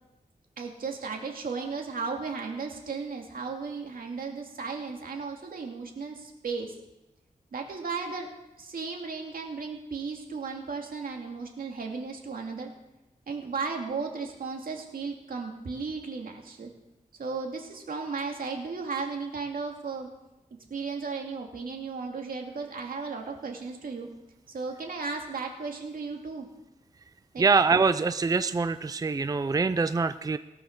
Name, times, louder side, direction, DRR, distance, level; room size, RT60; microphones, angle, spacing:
voice 1, 0.6-6.7 7.5-8.3 8.6-12.7 13.3-16.7 17.2-20.1 20.7-24.1 24.5-26.5 27.3-27.4, right 4 dB, 85° right, 2 dB, 2.4 m, -35 dB
voice 2, 27.4-30.4, right 4 dB, 25° right, 12 dB, 0.4 m, -24 dB
17.5 x 7.3 x 6.5 m, 0.96 s
wide cardioid pair, 95°, 14 cm